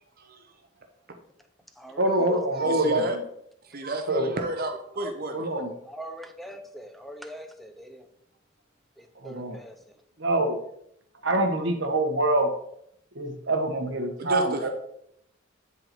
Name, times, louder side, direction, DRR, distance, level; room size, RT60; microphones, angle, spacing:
voice 1, 2.0-3.2 4.1-4.3 5.3-5.7 9.2-9.6 10.2-10.6 11.2-12.5 13.1-14.7, right 1 dB, 65° right, 5 dB, 1.3 m, -25 dB
voice 2, 2.5-3.2 3.7-5.5 14.2-14.7, right 1 dB, 50° right, 4 dB, 0.9 m, -31 dB
voice 3, 5.8-8.1 9.0-10.0, equal, ahead, 6 dB, 0.7 m, -42 dB
9.7 x 4.0 x 4.5 m, 0.73 s
head